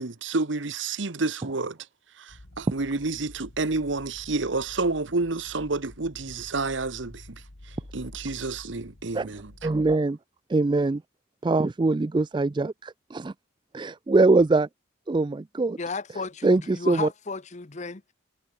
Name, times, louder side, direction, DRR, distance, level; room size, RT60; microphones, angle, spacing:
voice 1, 0.0-1.8 2.2-7.4 7.9-9.7, right 3 dB, 70° right, 1.2 m, -29 dB
sound 1, 2.3-10.0, left 1 dB, 85° left, 2.1 m, -48 dB
voice 2, 9.6-10.2 10.5-11.0 11.4-13.3 13.7-14.7 15.1-15.8 16.4-17.1, right 3 dB, 25° right, 0.3 m, -22 dB
voice 3, 15.8-18.1, left 4 dB, 35° left, 0.8 m, -34 dB
head